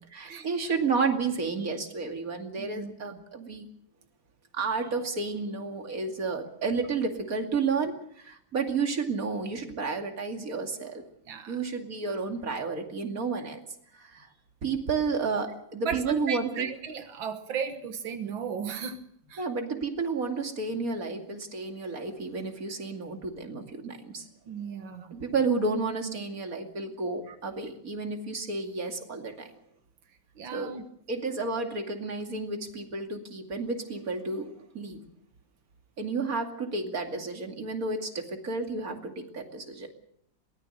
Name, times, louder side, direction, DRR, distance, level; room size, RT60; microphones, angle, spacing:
voice 1, 0.1-3.7 4.5-11.0 11.5-13.6 14.0-14.3 14.6-16.7 19.4-24.3 25.1-29.5 30.5-30.7 31.1-35.0 36.0-39.9, right 4 dB, 45° right, 3 dB, 2.9 m, -31 dB
voice 2, 2.6-2.9 11.3-11.6 13.9-14.0 15.9-19.0 19.3-19.4 24.5-25.2 27.3-27.4 30.4-30.8, right 7 dB, 90° right, 7 dB, 2.1 m, -35 dB
23.0 x 19.0 x 6.5 m, 0.68 s
omnidirectional pair, 2.1 m